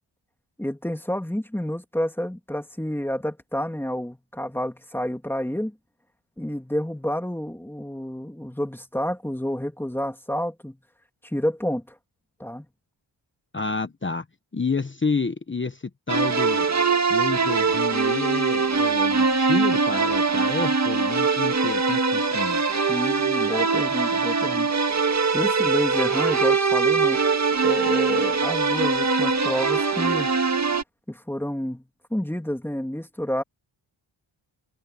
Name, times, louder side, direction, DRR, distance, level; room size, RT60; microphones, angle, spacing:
voice 1, 0.6-5.7 6.4-10.8 11.2-12.0 12.4-12.7 22.9-24.7 25.3-27.2 27.6-30.3 31.1-33.4, equal, 5° left, 2.8 m, -29 dB
voice 2, 13.5-14.2 14.5-16.7 17.1-22.6, left 4 dB, 25° left, 1.1 m, -29 dB
sound 1, 16.1-30.8, right 4 dB, 35° right, 1.7 m, -22 dB
wide cardioid pair, 115°, 49 cm